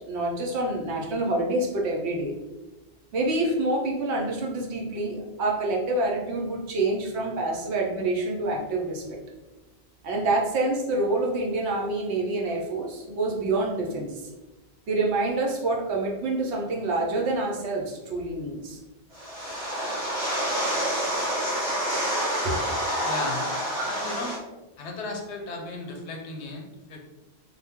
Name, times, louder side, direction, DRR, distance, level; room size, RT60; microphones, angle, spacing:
voice 1, 0.0-2.3 3.1-9.2 10.0-14.3 14.9-18.8 22.4-22.6, right 2 dB, 75° right, 0 dB, 0.9 m, -27 dB
sound 1, 19.1-24.4, equal, 10° right, 1.1 m, -28 dB
voice 2, 23.0-23.5 23.8-24.4 24.8-27.0, left 3 dB, 85° left, 2 dB, 0.9 m, -35 dB
2.2 x 2.0 x 3.4 m, 1.1 s
omnidirectional pair, 1.1 m